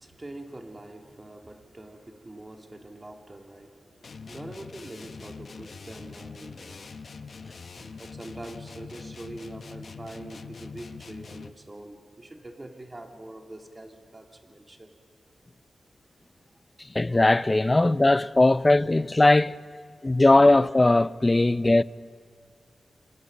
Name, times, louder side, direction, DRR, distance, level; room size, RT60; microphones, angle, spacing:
voice 1, 0.0-6.8 7.7-14.9, right 1 dB, 30° right, 2.5 m, -44 dB
sound 1, 4.0-11.7, left 5 dB, 60° left, 0.9 m, -43 dB
voice 2, 16.9-19.6 20.0-21.8, left 2 dB, 25° left, 0.5 m, -19 dB
27.5 x 26.5 x 5.3 m
cardioid pair, 75°, 0 cm